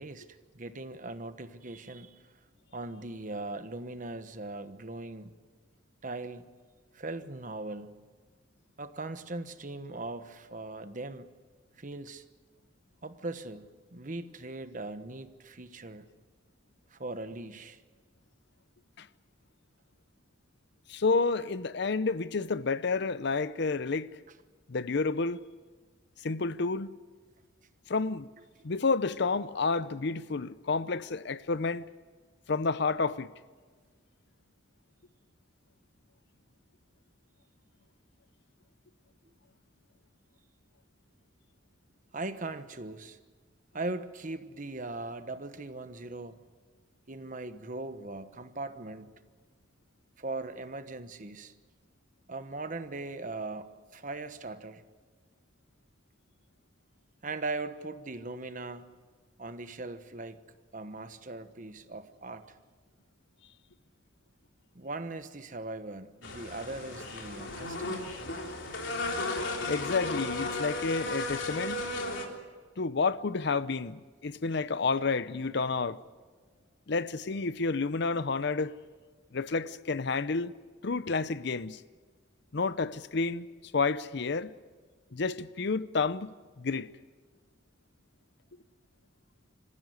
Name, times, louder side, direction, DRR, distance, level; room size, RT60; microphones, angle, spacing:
voice 1, 0.0-2.2 2.7-5.3 6.0-6.5 6.9-8.0 8.8-11.3 11.8-12.2 13.0-16.1 16.9-17.8 42.1-43.2 43.7-46.4 47.1-49.1 50.2-51.5 52.3-54.8 57.2-58.9 59.4-60.4 60.7-62.5 64.7-68.2, right 2 dB, 45° right, 1.2 m, -39 dB
voice 2, 20.9-24.1 24.7-25.4 26.2-26.9 27.9-28.3 28.6-31.8 32.5-33.3 69.7-71.8 72.8-76.0 76.9-78.7 79.3-80.5 80.8-81.8 82.5-83.5 83.7-84.5 85.1-86.9, left 4 dB, 60° left, 0.7 m, -30 dB
sound 1, 66.2-72.3, left 2 dB, 80° left, 3.5 m, -35 dB
26.5 x 15.0 x 9.5 m
head